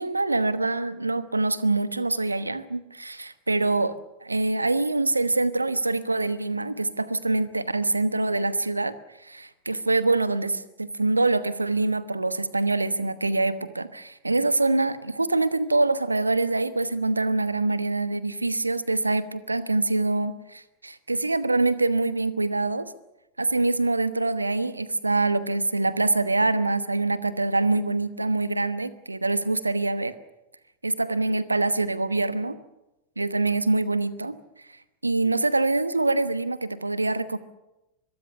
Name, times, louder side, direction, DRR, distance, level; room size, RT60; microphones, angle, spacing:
voice 1, 0.0-8.9 9.2-22.9 23.4-30.1 30.8-32.6 33.2-34.4 35.0-37.4, right 2 dB, 80° right, 14 dB, 1.1 m, -25 dB
24.0 x 22.0 x 7.0 m, 0.96 s
figure-of-eight pair, 90°, 0 cm